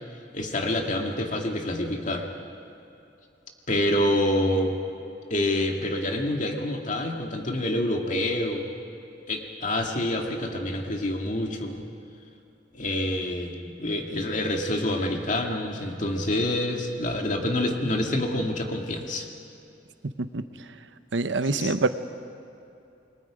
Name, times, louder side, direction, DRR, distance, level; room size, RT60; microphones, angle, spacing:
voice 1, 0.3-2.3 3.7-4.8 5.3-8.7 9.3-11.8 12.7-19.3 21.6-21.8, left 1 dB, 45° left, 2 dB, 2.2 m, -27 dB
voice 2, 21.1-21.9, right 3 dB, 90° right, 11 dB, 0.9 m, -25 dB
28.5 x 21.5 x 5.2 m, 2.7 s
head